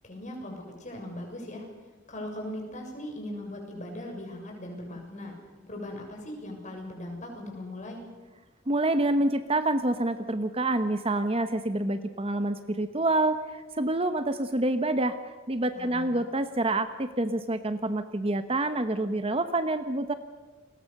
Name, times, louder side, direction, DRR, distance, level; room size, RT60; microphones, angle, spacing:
voice 1, 0.0-1.7 2.1-5.3 5.7-8.0 15.8-16.2, left 1 dB, 35° left, 1 dB, 6.9 m, -39 dB
voice 2, 8.7-20.1, right 2 dB, 30° right, 10 dB, 1.0 m, -27 dB
30.0 x 21.5 x 6.7 m, 1.3 s
head